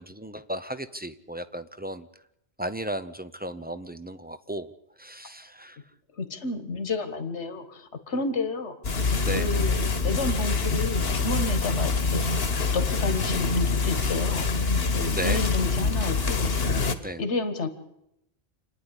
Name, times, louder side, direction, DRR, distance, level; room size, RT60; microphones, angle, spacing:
voice 1, 0.0-2.1 2.6-4.7 5.0-5.8 9.2-9.5 15.1-15.4 17.0-17.2, right 1 dB, 10° right, 11 dB, 0.5 m, -34 dB
voice 2, 6.2-8.8 9.3-12.2 12.7-14.4 14.9-16.5 17.2-17.7, left 3 dB, 80° left, 10 dB, 1.9 m, -30 dB
sound 1, 8.8-16.9, left 4 dB, 60° left, 1.5 m, -25 dB
27.5 x 10.0 x 9.9 m, 0.82 s
omnidirectional pair, 1.1 m